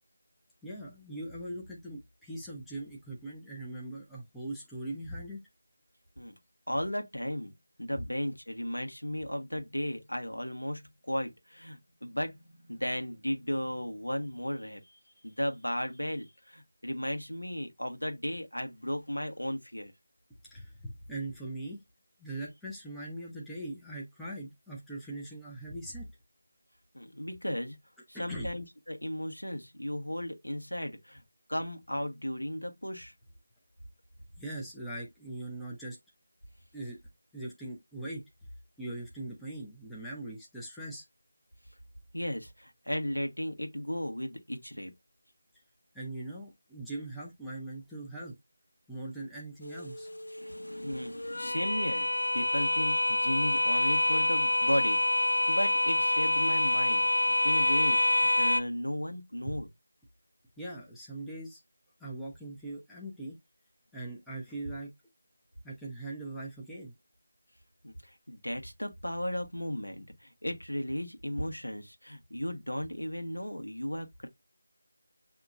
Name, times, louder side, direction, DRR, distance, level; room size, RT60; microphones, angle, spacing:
voice 1, 0.6-5.4 20.4-21.8 22.2-26.1 28.1-28.5 34.4-36.0 36.7-37.0 37.3-38.2 38.8-41.0 45.9-48.3 48.9-50.1 59.4-59.6 60.6-61.6 62.0-63.4 63.9-64.9 65.6-66.9, right 1 dB, ahead, 0.7 m, -41 dB
voice 2, 6.7-7.5 7.8-14.8 15.2-19.9 26.9-27.8 28.1-31.2 31.5-33.1 42.1-44.9 50.3-59.7 67.8-74.3, equal, 85° left, 1.2 m, -35 dB
sound 1, 49.6-58.6, left 1 dB, 60° left, 0.7 m, -27 dB
6.9 x 2.9 x 2.4 m
figure-of-eight pair, 165°, 0 cm